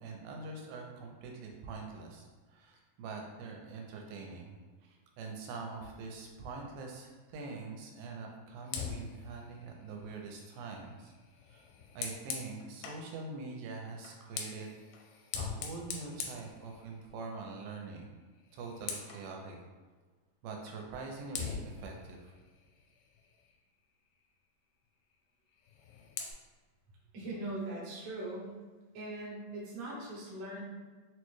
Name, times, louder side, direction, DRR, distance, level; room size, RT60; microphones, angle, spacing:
voice 1, 0.0-4.6 4.8-11.1 11.5-11.6 12.0-14.8 15.4-18.1 18.5-19.6 20.4-22.3, right 4 dB, 85° right, 1 dB, 2.3 m, -44 dB
Fire, 8.6-13.1 14.0-17.3 17.6-17.9 18.2-19.3 20.7-20.8 21.3-23.7 25.5-26.3, left 6 dB, 85° left, 2.3 m, -43 dB
voice 2, 27.1-28.5 28.9-30.6, right 2 dB, 60° right, -5 dB, 1.6 m, -40 dB
6.1 x 2.1 x 3.1 m, 1.4 s
omnidirectional pair, 4.0 m